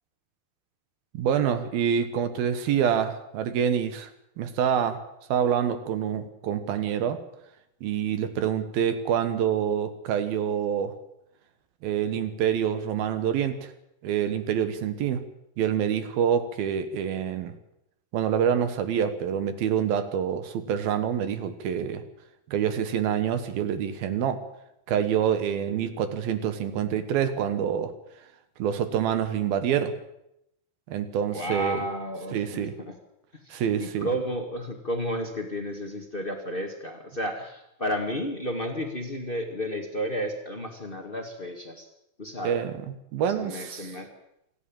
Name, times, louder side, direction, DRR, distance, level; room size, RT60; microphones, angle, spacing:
voice 1, 1.1-4.1 4.4-5.0 5.3-7.2 7.8-11.0 11.8-13.7 14.0-15.2 15.6-17.5 18.1-22.0 22.5-24.4 24.9-27.9 28.6-29.9 30.9-31.8 32.3-32.7 33.5-34.1 42.4-43.9, right 8 dB, 70° right, 10 dB, 3.1 m, -26 dB
voice 2, 31.3-32.9 33.4-41.9 42.2-42.6 43.4-44.1, equal, 50° left, 4 dB, 0.6 m, -32 dB
27.0 x 11.5 x 8.8 m, 0.82 s
omnidirectional pair, 4.6 m